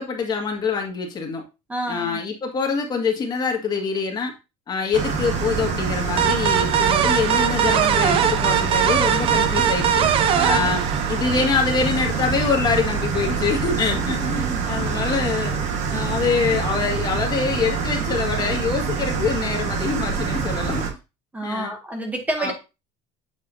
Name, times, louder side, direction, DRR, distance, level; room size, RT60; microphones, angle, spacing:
voice 1, 0.0-1.4 1.9-4.3 4.7-10.1 10.4-10.8 11.1-15.6 15.9-20.9 21.4-21.7 22.4-22.5, left 5 dB, 30° left, 1 dB, 1.8 m, -25 dB
voice 2, 1.7-2.2 10.3-10.7 14.1-14.6 21.3-22.5, right 1 dB, 10° right, 2 dB, 1.8 m, -28 dB
sound 1, 4.9-20.9, right 5 dB, 60° right, 1.5 m, -25 dB
sound 2, 6.2-11.6, right 9 dB, 40° right, 0.6 m, -21 dB
8.1 x 4.8 x 2.7 m, 0.28 s
cardioid pair, 145°, 14 cm